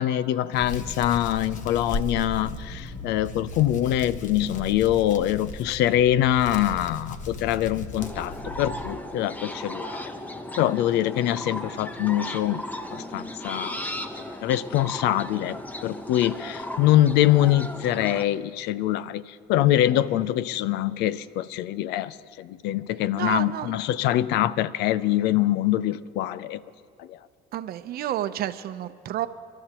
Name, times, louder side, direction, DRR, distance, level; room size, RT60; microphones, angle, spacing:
voice 1, 0.0-10.0 10.6-12.7 12.9-13.9 14.2-26.6 27.0-27.2, left 13 dB, 90° left, 17 dB, 0.5 m, -24 dB
Hands, 0.5-8.9, left 2 dB, 50° left, 1.1 m, -36 dB
sound 1, 8.0-18.2, left 1 dB, 10° left, 0.9 m, -36 dB
voice 2, 23.1-23.8 27.5-29.3, right 12 dB, 65° right, 12 dB, 0.7 m, -30 dB
30.0 x 12.5 x 2.9 m, 2.4 s
cardioid pair, 110°, 17 cm